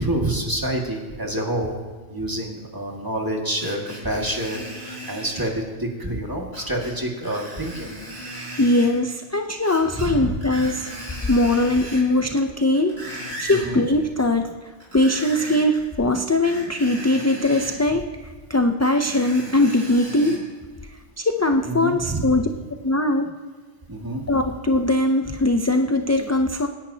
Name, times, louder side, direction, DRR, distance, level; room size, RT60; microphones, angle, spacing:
voice 1, 0.0-1.7 2.1-7.9 9.9-10.3 10.5-10.6 13.5-13.9 21.6-22.3 23.9-24.2, right 1 dB, 20° right, -1 dB, 1.9 m, -27 dB
Screech, 3.6-5.5 6.5-6.9 7.2-8.9 9.6-10.1 10.4-12.1 12.6-13.7 14.8-15.8 16.4-17.8 18.8-20.4 21.0-21.1, equal, 90° right, 5.6 m, -36 dB
voice 2, 8.3-14.5 14.9-20.4 21.2-22.5 22.8-23.3 24.3-26.7, left 1 dB, 25° left, 5 dB, 0.4 m, -21 dB
26.5 x 10.5 x 2.8 m, 1.5 s
omnidirectional pair, 1.1 m